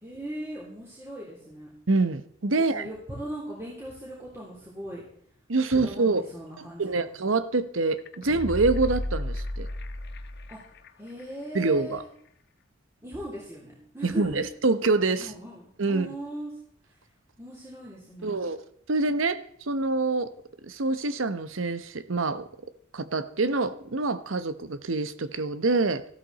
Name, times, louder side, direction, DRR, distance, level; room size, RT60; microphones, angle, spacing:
voice 1, 0.0-1.7 2.6-5.0 5.7-7.1 10.5-10.6 11.0-12.1 13.0-14.4 15.2-16.5 16.9-17.0 17.4-18.5, right 1 dB, 15° right, 3.4 m, -39 dB
voice 2, 1.9-2.9 5.5-6.2 6.6-9.7 11.5-12.0 14.0-15.3 15.8-16.1 18.2-18.6 18.9-20.3 20.6-22.5 22.9-26.1, right 3 dB, 90° right, 1.0 m, -26 dB
sound 1, 8.0-10.9 11.2-11.3, left 1 dB, 55° left, 1.0 m, -33 dB
14.5 x 13.0 x 4.1 m
head